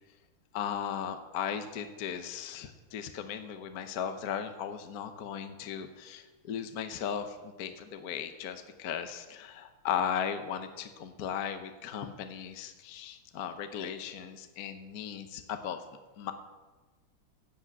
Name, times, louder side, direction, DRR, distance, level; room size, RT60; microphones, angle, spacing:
voice 1, 0.5-15.8 16.2-16.3, left 8 dB, 55° left, 7 dB, 1.2 m, -36 dB
11.0 x 8.4 x 8.1 m, 1.3 s
omnidirectional pair, 2.3 m